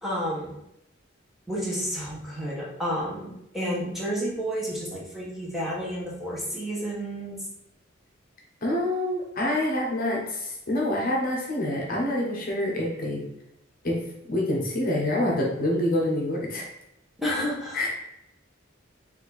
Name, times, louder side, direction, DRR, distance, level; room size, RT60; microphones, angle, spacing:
voice 1, 0.0-0.6 1.5-7.3 17.2-17.9, equal, ahead, -6 dB, 1.0 m, -31 dB
voice 2, 8.6-13.2 13.8-14.0 14.3-16.7 17.7-17.9, left 1 dB, 45° left, -2 dB, 1.0 m, -26 dB
4.3 x 2.7 x 4.1 m, 0.81 s
head